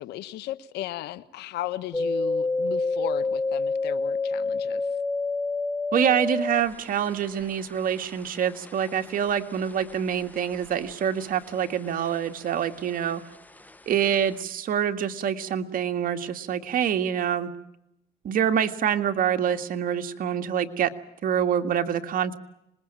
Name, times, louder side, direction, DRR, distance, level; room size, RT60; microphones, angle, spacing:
voice 1, 0.0-4.8, left 14 dB, 80° left, 14 dB, 1.3 m, -35 dB
sound 1, 1.9-11.3 11.6-12.5 12.8-13.8 14.1-14.2, left 3 dB, 10° left, 0.9 m, -29 dB
voice 2, 5.9-13.2 13.9-17.5 18.2-20.9 21.2-22.4, right 9 dB, 55° right, 6 dB, 2.0 m, -26 dB
26.5 x 21.0 x 9.0 m, 0.85 s
cardioid pair, 110°, 17 cm